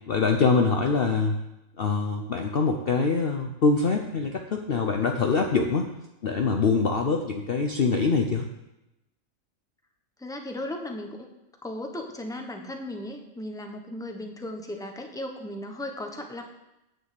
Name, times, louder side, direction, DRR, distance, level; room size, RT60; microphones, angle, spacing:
voice 1, 0.1-1.4 1.8-5.9 6.2-8.5, left 4 dB, 50° left, 3 dB, 0.8 m, -24 dB
voice 2, 10.2-11.3 11.6-16.4, left 1 dB, 5° left, 3 dB, 1.1 m, -36 dB
8.9 x 6.7 x 7.7 m, 0.92 s
omnidirectional pair, 1.5 m